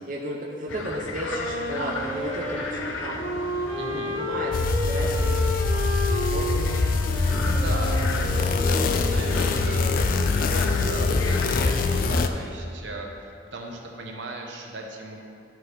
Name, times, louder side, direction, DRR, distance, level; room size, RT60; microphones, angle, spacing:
voice 1, 0.1-3.2 3.8-5.6 6.2-6.4, right 1 dB, 40° right, -4 dB, 0.6 m, -33 dB
sound 1, 0.7-12.4, left 3 dB, 85° left, 0.6 m, -36 dB
Wind instrument woodwind instrument, 1.1-9.5, left 1 dB, 65° left, 1.6 m, -32 dB
voice 2, 3.8-4.2 6.1-6.9 7.2-9.9 10.3-15.3, right 2 dB, 70° right, 1 dB, 0.9 m, -38 dB
sound 2, 4.5-12.3, left 3 dB, 45° left, 0.3 m, -23 dB
11.0 x 4.7 x 3.4 m, 2.4 s
head